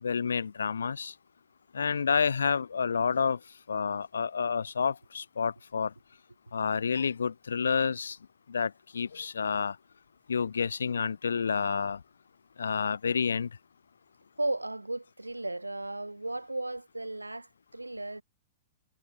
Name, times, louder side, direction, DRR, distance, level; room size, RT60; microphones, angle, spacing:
voice 1, 0.0-1.1 1.7-3.4 3.7-5.9 6.5-8.2 8.5-9.8 10.3-12.0 12.6-13.5, left 6 dB, 70° left, 0.5 m, -29 dB
voice 2, 14.4-18.2, right 2 dB, 85° right, 1.2 m, -35 dB
figure-of-eight pair, 105°, 0 cm